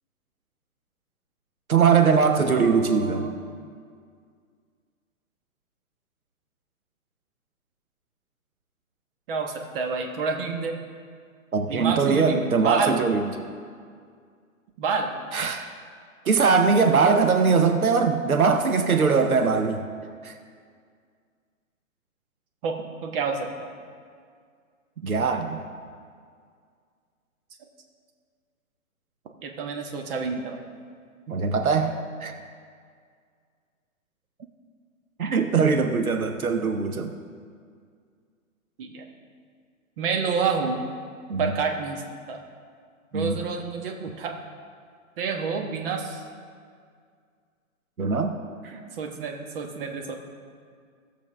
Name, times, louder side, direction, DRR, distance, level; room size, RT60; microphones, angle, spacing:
voice 1, 1.7-3.2 11.5-13.3 15.3-15.7 16.2-19.8 20.2-20.3 25.0-25.6 31.3-32.4 35.2-37.1 41.3-41.5 43.1-43.4 48.0-48.3, right 5 dB, 90° right, 6 dB, 0.8 m, -21 dB
voice 2, 2.5-3.3 9.3-10.7 11.7-13.0 14.8-15.1 22.6-22.8 23.0-23.5 29.4-30.6 38.8-39.0 40.0-40.8 41.4-42.0 42.3-42.4 43.1-44.3 45.2-46.2 48.6-50.1, right 5 dB, 40° right, 2 dB, 1.3 m, -28 dB
16.0 x 7.0 x 3.3 m, 2.1 s
figure-of-eight pair, 125°, 42 cm